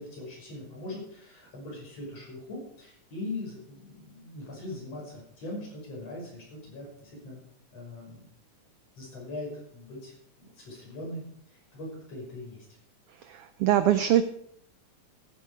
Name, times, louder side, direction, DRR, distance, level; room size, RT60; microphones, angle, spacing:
voice 1, 0.0-7.4 7.7-8.3 9.0-10.1 10.6-12.7, left 2 dB, 60° left, -3 dB, 6.7 m, -41 dB
voice 2, 13.1-14.2, right 11 dB, 80° right, 11 dB, 1.3 m, -24 dB
14.0 x 10.0 x 4.9 m, 0.67 s
omnidirectional pair, 3.3 m